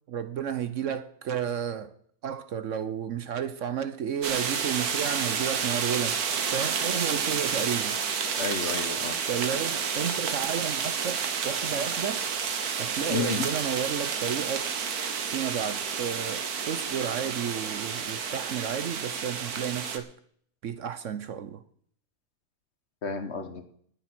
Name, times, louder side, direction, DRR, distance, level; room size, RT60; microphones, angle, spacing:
voice 1, 0.1-1.9 2.2-6.2 6.5-8.0 9.3-12.2 12.8-14.7 15.3-20.1 20.6-21.6, right 8 dB, 60° right, 1.0 m, -32 dB
sound 1, 4.2-20.0, right 6 dB, 85° right, 1.7 m, -30 dB
voice 2, 8.4-9.2 13.1-13.5 23.0-23.7, left 4 dB, 50° left, 1.5 m, -31 dB
19.0 x 7.1 x 6.0 m
omnidirectional pair, 1.6 m